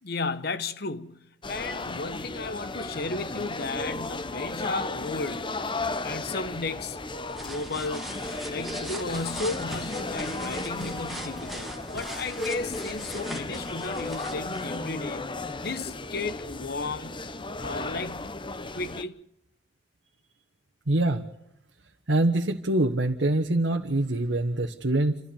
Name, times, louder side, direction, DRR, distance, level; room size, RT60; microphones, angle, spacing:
voice 1, 0.0-5.5 6.0-7.0 7.4-8.1 8.5-15.3 15.6-17.2 17.6-18.3 18.7-19.2, left 3 dB, 60° left, 1.1 m, -34 dB
sound 1, 1.4-19.0, left 2 dB, 25° left, 0.9 m, -35 dB
sound 2, 7.0-14.8, right 1 dB, ahead, 2.2 m, -40 dB
voice 2, 20.9-21.2 22.1-25.2, right 1 dB, 80° right, 1.4 m, -24 dB
28.5 x 13.5 x 7.1 m
head